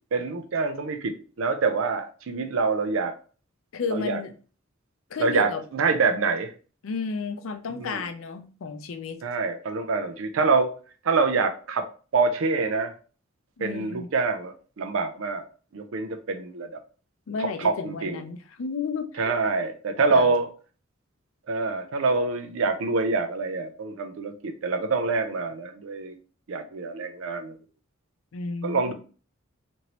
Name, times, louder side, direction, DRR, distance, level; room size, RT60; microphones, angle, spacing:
voice 1, 0.1-3.2 3.9-4.2 5.2-6.5 7.7-8.0 9.2-10.7 11.0-11.9 12.1-12.9 13.6-15.4 15.7-16.7 17.4-18.2 19.2-20.5 21.5-26.1 26.5-27.6 28.6-28.9, right 4 dB, 80° right, 0.4 m, -26 dB
voice 2, 3.7-4.3 5.1-5.6 6.8-9.2 13.6-14.1 17.3-19.3 20.1-20.3 28.3-28.9, left 4 dB, 85° left, 0.5 m, -32 dB
2.9 x 2.6 x 2.9 m
head